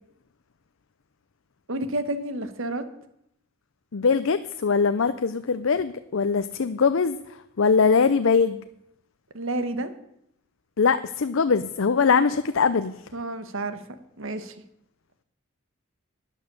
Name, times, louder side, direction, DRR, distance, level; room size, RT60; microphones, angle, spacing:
voice 1, 1.7-2.9 9.3-9.9 13.1-13.8 14.2-14.5, right 1 dB, 65° right, 11 dB, 1.3 m, -30 dB
voice 2, 3.9-7.2 7.6-8.6 10.8-12.9, left 5 dB, 65° left, 12 dB, 0.5 m, -22 dB
11.5 x 10.0 x 6.9 m, 0.78 s
head